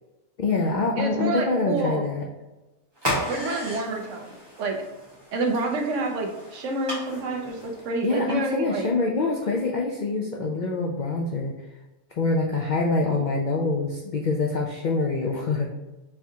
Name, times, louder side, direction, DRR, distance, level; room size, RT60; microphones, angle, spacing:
voice 1, 0.4-2.2 8.0-11.5 12.2-15.7, left 3 dB, 80° left, -1 dB, 0.4 m, -25 dB
voice 2, 1.0-2.0 3.3-4.8 5.3-8.9, right 2 dB, 70° right, 3 dB, 1.0 m, -28 dB
sound 1, 3.0-8.2, equal, 20° right, 1.3 m, -34 dB
4.5 x 3.5 x 2.7 m, 1.1 s
omnidirectional pair, 1.4 m